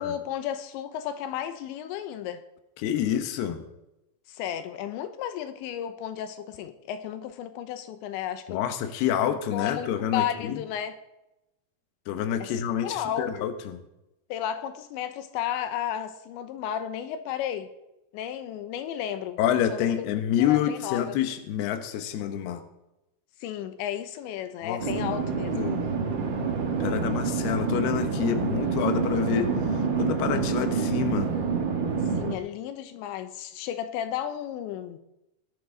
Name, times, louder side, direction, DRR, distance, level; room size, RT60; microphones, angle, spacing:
voice 1, 0.0-2.4 4.3-8.6 9.3-10.9 12.4-13.5 14.3-17.7 18.1-19.4 19.7-20.1 20.5-21.2 23.4-25.7 32.2-35.0, left 10 dB, 90° left, 9 dB, 3.2 m, -33 dB
voice 2, 2.8-3.7 8.5-10.6 12.1-13.8 19.4-22.6 24.6-25.9 26.8-31.3, left 9 dB, 70° left, 7 dB, 3.0 m, -28 dB
sound 1, 24.8-32.4, right 5 dB, 85° right, 1.0 m, -27 dB
19.5 x 12.0 x 3.9 m, 0.90 s
omnidirectional pair, 5.1 m